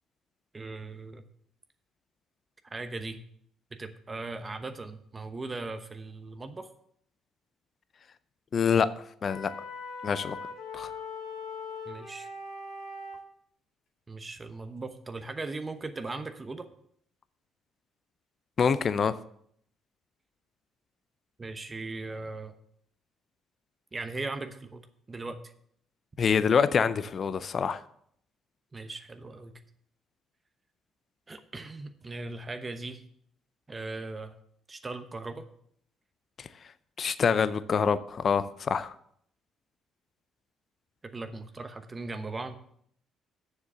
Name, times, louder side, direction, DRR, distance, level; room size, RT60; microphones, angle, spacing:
voice 1, 0.5-1.2 2.6-3.2 3.7-6.7 11.9-12.3 14.1-16.7 21.4-22.6 23.9-24.8 25.1-25.4 28.7-29.6 31.3-33.0 33.7-34.3 34.7-35.4 41.0-42.6, right 3 dB, 30° right, 8 dB, 0.9 m, -38 dB
voice 2, 8.5-8.9 9.2-9.5 10.0-10.4 10.7-10.9 18.6-19.2 26.2-27.8 36.4-36.5 37.0-38.9, left 6 dB, 50° left, 15 dB, 0.5 m, -25 dB
sound 1, 9.3-13.2, left 3 dB, 70° left, 3.4 m, -40 dB
7.2 x 6.7 x 6.6 m, 0.67 s
hypercardioid pair, 55°, 0 cm